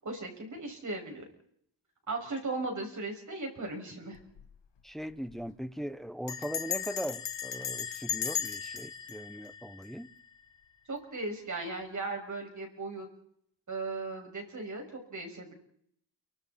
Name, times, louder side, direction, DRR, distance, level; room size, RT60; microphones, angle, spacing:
voice 1, 0.0-1.3 2.1-4.2 10.9-13.1 13.7-15.5, right 3 dB, 45° right, 6.5 m, -37 dB
Bell, 4.1-4.5 4.8-4.9 5.1-5.5 6.3-10.4, left 9 dB, 85° left, 1.4 m, -37 dB
voice 2, 4.8-10.1, equal, ahead, 0.9 m, -39 dB
28.5 x 24.5 x 4.4 m
wide cardioid pair, 140°, 42 cm